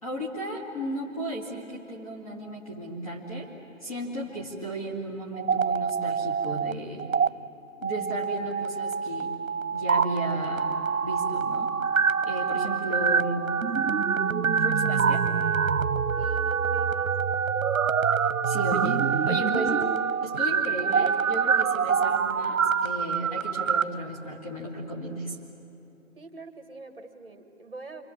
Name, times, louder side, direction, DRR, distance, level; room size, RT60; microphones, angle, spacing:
voice 1, 0.0-3.5 3.8-7.0 7.8-9.3 9.7-10.7 11.0-11.7 12.2-13.5 14.6-15.2 18.4-19.9 20.2-25.3, right 1 dB, 25° left, -5 dB, 2.2 m, -34 dB
sound 1, 5.3-6.7 7.0-7.3 7.8-23.8, right 6 dB, 85° right, 0.8 m, -25 dB
voice 2, 16.2-17.2 26.2-28.0, right 3 dB, 45° right, 5 dB, 1.8 m, -44 dB
28.5 x 25.5 x 7.3 m, 2.9 s
figure-of-eight pair, 180°, 40 cm